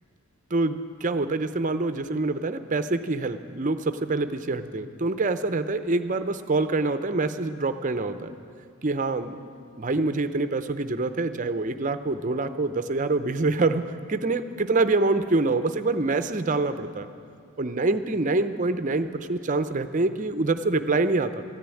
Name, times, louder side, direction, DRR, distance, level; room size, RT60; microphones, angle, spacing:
voice 1, 0.5-8.3 8.8-9.4 9.8-17.1 17.6-21.4, right 3 dB, 35° right, 11 dB, 0.5 m, -25 dB
14.0 x 10.5 x 9.0 m, 2.4 s
head